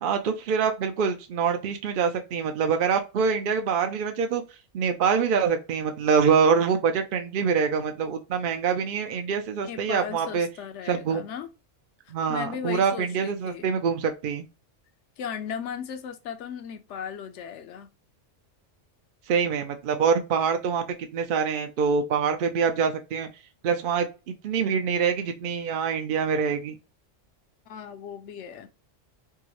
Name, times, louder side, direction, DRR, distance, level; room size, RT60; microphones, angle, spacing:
voice 1, 0.0-4.4 4.7-10.5 10.9-11.2 12.1-14.4 19.3-20.8 21.1-23.3 23.6-26.8, right 6 dB, 60° right, 0.6 m, -25 dB
voice 2, 9.7-11.5 12.3-13.7 15.2-17.9 27.7-28.7, left 8 dB, 70° left, 0.9 m, -36 dB
4.5 x 2.0 x 2.9 m
omnidirectional pair, 1.3 m